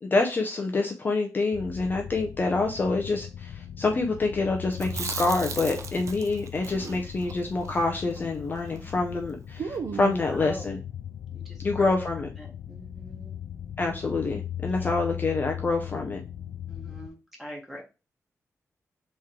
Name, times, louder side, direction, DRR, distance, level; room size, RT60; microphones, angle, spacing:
voice 1, 0.0-10.8 11.6-12.3 13.8-16.2, left 3 dB, 35° left, 3 dB, 0.6 m, -27 dB
sound 1, 1.5-17.1, left 10 dB, 85° left, 0.4 m, -39 dB
Chewing mastication, 4.7-8.9 9.2-9.3 9.6-10.3, right 6 dB, 60° right, 0.6 m, -36 dB
voice 2, 10.0-10.8 11.3-13.4 14.7-14.9 16.7-17.8, equal, 5° right, -1 dB, 1.4 m, -44 dB
3.7 x 3.1 x 4.3 m, 0.30 s
wide cardioid pair, 150°, 6 cm